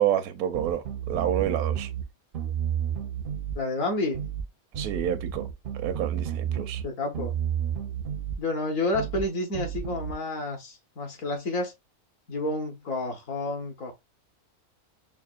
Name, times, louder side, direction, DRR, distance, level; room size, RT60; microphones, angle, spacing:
voice 1, 0.0-1.9 4.8-5.5 5.7-6.8, right 10 dB, 85° right, 1.1 m, -28 dB
sound 1, 0.5-2.1 2.3-3.6 4.1-4.5 4.7-6.9 7.1-8.4 8.9-9.3 9.5-10.1, right 9 dB, 60° right, 0.5 m, -31 dB
voice 2, 3.6-4.2 6.8-7.3 8.4-11.7 12.3-13.9, left 2 dB, 65° left, 1.4 m, -30 dB
5.7 x 2.1 x 2.4 m
omnidirectional pair, 1.5 m